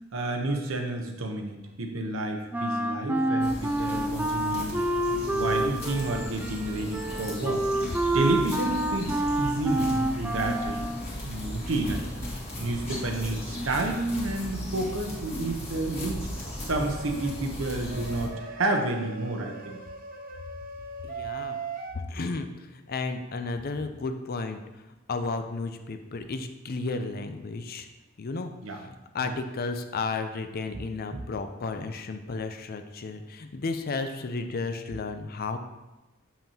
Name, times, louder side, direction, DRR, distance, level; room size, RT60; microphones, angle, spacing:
voice 1, 0.1-4.9 5.3-7.6 8.1-10.9 11.2-12.1 12.6-16.3 16.6-19.8 28.6-28.8 29.2-29.3 31.1-31.2, right 2 dB, 75° right, 3 dB, 0.9 m, -30 dB
Wind instrument woodwind instrument, 2.5-11.1, right 1 dB, 10° right, 0.3 m, -28 dB
sound 1, 3.4-18.3, equal, 30° left, 1.6 m, -37 dB
sound 2, 16.7-17.3 17.9-21.9, right 4 dB, 45° right, 0.7 m, -39 dB
voice 2, 21.0-21.6 21.9-24.6 25.1-27.9 28.2-35.6, left 3 dB, 50° left, 7 dB, 0.5 m, -33 dB
7.1 x 5.7 x 2.8 m, 1.0 s
head